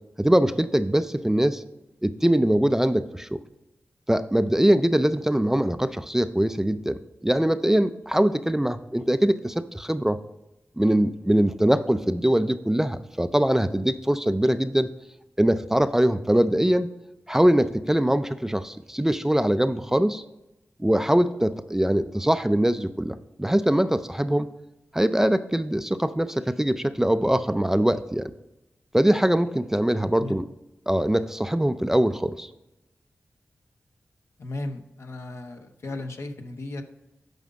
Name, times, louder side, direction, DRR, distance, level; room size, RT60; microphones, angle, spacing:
voice 1, 0.2-1.6 2.0-3.4 4.1-10.2 10.8-14.9 15.4-16.9 17.3-20.2 20.8-24.5 24.9-28.3 28.9-30.5 30.9-32.5, right 1 dB, 10° right, 11 dB, 0.4 m, -22 dB
voice 2, 34.4-36.8, left 2 dB, 70° left, 5 dB, 0.9 m, -35 dB
9.3 x 5.5 x 5.1 m, 0.94 s
wide cardioid pair, 95°, 5 cm